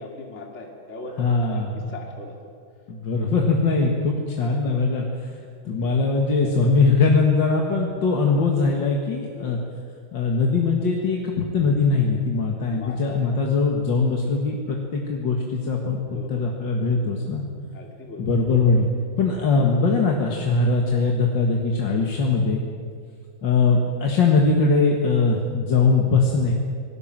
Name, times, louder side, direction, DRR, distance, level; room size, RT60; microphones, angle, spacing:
voice 1, 0.0-1.6 1.9-2.5 8.4-8.5 9.4-9.6 12.6-13.7 16.1-16.5 17.7-18.3, left 2 dB, 35° left, 0 dB, 2.6 m, -39 dB
voice 2, 1.2-1.8 2.9-5.3 5.7-9.6 10.1-16.0 16.3-17.5 18.2-22.6 23.4-26.5, left 4 dB, 65° left, 0 dB, 2.5 m, -21 dB
26.0 x 19.5 x 7.6 m, 2.3 s
omnidirectional pair, 2.2 m